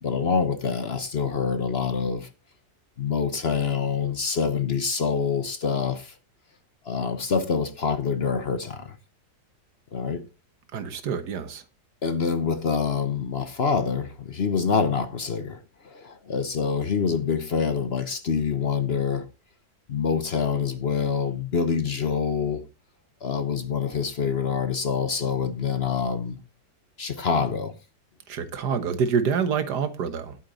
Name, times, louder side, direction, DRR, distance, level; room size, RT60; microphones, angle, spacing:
voice 1, 0.0-2.3 3.0-6.1 6.9-9.0 9.9-10.2 12.0-15.6 15.8-19.2 19.9-22.6 23.2-26.4 27.0-27.7, left 6 dB, 45° left, 1.0 m, -26 dB
voice 2, 10.7-11.6 28.3-30.4, right 6 dB, 85° right, 1.8 m, -27 dB
11.5 x 8.0 x 4.0 m
omnidirectional pair, 1.7 m